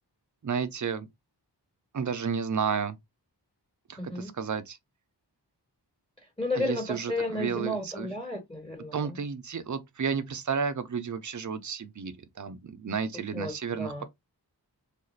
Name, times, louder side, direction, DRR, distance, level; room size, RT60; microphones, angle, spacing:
voice 1, 0.4-1.1 1.9-3.0 3.9-4.8 6.6-8.1 8.9-14.0, right 6 dB, 45° right, 0.6 m, -32 dB
voice 2, 4.0-4.3 6.4-9.2 13.3-14.0, left 1 dB, 15° left, 1.4 m, -33 dB
3.1 x 2.4 x 3.1 m
wide cardioid pair, 60°, 42 cm